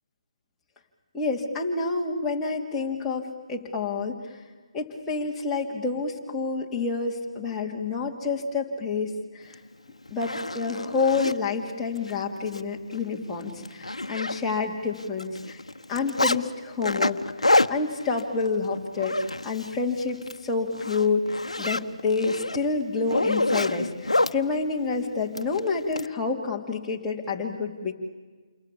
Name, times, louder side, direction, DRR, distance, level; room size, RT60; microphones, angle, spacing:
voice 1, 1.1-4.4 4.7-9.6 10.1-15.6 15.9-19.2 19.4-27.9, left 4 dB, 10° left, -2 dB, 2.8 m, -28 dB
Zipper (clothing), 9.5-9.6 10.1-11.4 12.0-12.1 12.5-12.6 12.9-13.1 13.4-14.7 15.0-16.4 16.8-19.8 20.1-20.4 20.7-24.4 25.3-26.1, left 2 dB, 85° left, 1.1 m, -27 dB
29.0 x 23.5 x 8.6 m, 1.4 s
figure-of-eight pair, 150°, 3 cm